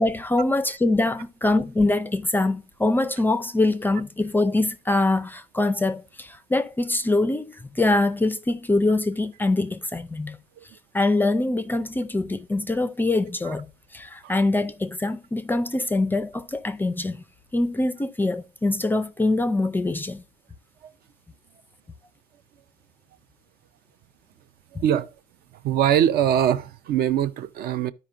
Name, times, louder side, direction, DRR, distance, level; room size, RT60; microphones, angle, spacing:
voice 1, 0.0-10.4 10.9-13.7 13.9-17.2 17.5-20.2, left 2 dB, 10° left, 0.4 m, -24 dB
voice 2, 24.8-25.1 25.6-27.9, right 10 dB, 55° right, 0.5 m, -22 dB
13.0 x 5.0 x 2.5 m
cardioid pair, 160°, 19 cm